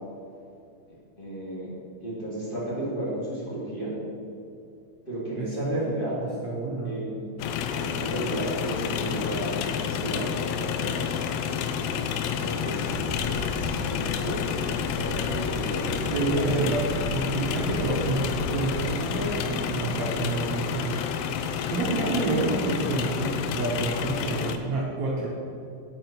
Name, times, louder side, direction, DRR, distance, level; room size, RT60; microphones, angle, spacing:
voice 1, 1.2-1.7 2.0-3.9 5.1-6.2 6.8-7.3 7.7-10.9 12.2-16.5 21.9-22.4, right 1 dB, 20° left, -8 dB, 1.6 m, -33 dB
voice 2, 5.4-5.7 6.2-7.0 16.1-21.0 21.4-25.3, right 3 dB, 75° right, -5 dB, 1.6 m, -29 dB
sound 1, 7.4-24.6, left 7 dB, 80° left, 2.5 m, -29 dB
Wind, 12.7-19.6 19.9-20.3, left 2 dB, 50° left, 3.7 m, -37 dB
8.9 x 6.1 x 6.0 m, 2.5 s
omnidirectional pair, 5.0 m